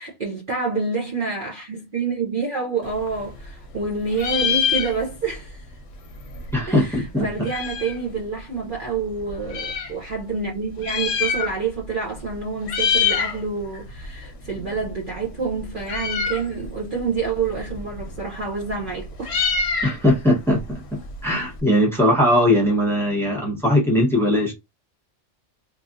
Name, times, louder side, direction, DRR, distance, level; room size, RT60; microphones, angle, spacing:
voice 1, 0.0-5.7 6.7-19.4, right 4 dB, 50° right, 0.7 m, -28 dB
Meow, 2.9-3.8 4.1-5.4 5.7-5.8 5.9-8.1 8.7-9.9 10.7-11.9 12.1-12.4 12.6-13.4 13.7-21.6, left 6 dB, 65° left, 0.9 m, -26 dB
voice 2, 6.5-7.5 19.8-24.5, left 1 dB, ahead, 1.0 m, -20 dB
3.0 x 2.4 x 2.5 m
omnidirectional pair, 1.3 m